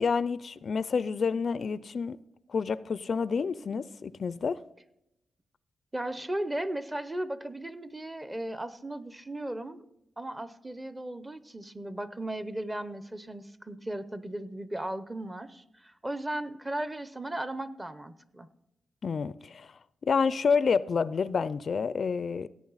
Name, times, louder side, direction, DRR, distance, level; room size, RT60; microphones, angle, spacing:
voice 1, 0.0-2.2 2.5-4.6 19.0-19.7 20.0-22.5, left 5 dB, 50° left, 0.4 m, -28 dB
voice 2, 5.9-9.8 10.2-18.5, right 1 dB, 15° right, 0.7 m, -36 dB
16.5 x 8.5 x 4.0 m
cardioid pair, 100°, 0 cm